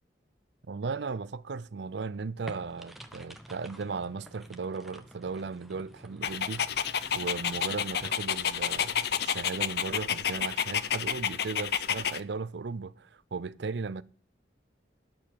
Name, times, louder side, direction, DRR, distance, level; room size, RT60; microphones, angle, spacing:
voice 1, 0.7-6.6 7.1-14.0, right 4 dB, 70° right, 0.5 m, -36 dB
sound 1, 2.5-8.1, equal, ahead, 0.8 m, -49 dB
Dog, 6.2-12.2, left 8 dB, 60° left, 0.5 m, -30 dB
10.5 x 6.6 x 7.4 m
head